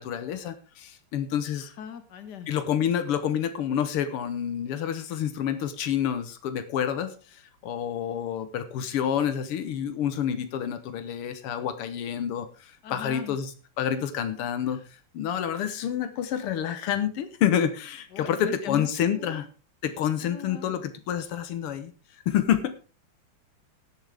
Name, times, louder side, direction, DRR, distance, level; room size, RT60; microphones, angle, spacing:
voice 1, 0.0-1.7 2.5-13.5 13.8-14.8 15.1-19.5 19.8-21.9 22.3-22.8, left 9 dB, 85° left, 10 dB, 2.0 m, -28 dB
voice 2, 1.5-2.5 12.8-13.4 14.7-14.8 18.1-19.4 20.2-20.8, left 7 dB, 55° left, 9 dB, 1.9 m, -40 dB
18.0 x 7.3 x 3.5 m, 0.35 s
omnidirectional pair, 2.4 m